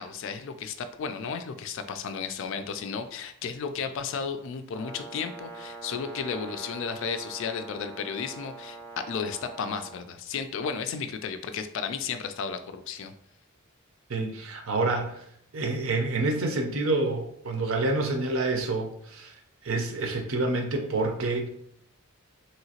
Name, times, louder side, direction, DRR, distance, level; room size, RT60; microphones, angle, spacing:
voice 1, 0.0-8.8 9.1-13.1, left 6 dB, 60° left, 10 dB, 0.3 m, -33 dB
Brass instrument, 4.7-10.0, right 3 dB, 10° left, 0.6 m, -43 dB
voice 2, 14.1-15.2 15.5-19.3 19.6-21.5, right 2 dB, 65° right, 3 dB, 0.6 m, -28 dB
3.1 x 2.8 x 2.8 m, 0.71 s
head